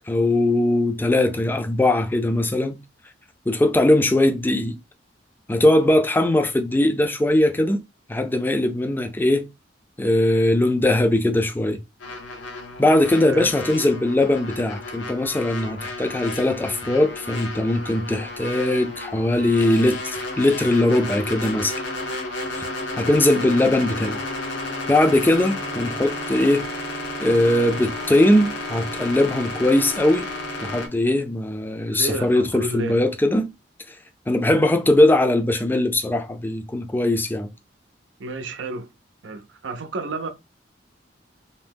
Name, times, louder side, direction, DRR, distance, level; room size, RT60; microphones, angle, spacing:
voice 1, 0.1-2.8 3.5-4.8 5.5-7.8 8.1-9.5 10.0-11.8 12.8-21.7 22.6-22.7 23.0-24.2 24.9-26.7 27.2-30.3 30.6-33.5 34.3-37.5, left 1 dB, 10° left, 0.4 m, -20 dB
sound 1, 12.0-30.9, left 2 dB, 90° left, 0.8 m, -32 dB
voice 2, 31.9-33.0 38.2-38.9 39.2-40.3, right 2 dB, 80° right, 0.6 m, -30 dB
2.7 x 2.1 x 3.3 m
head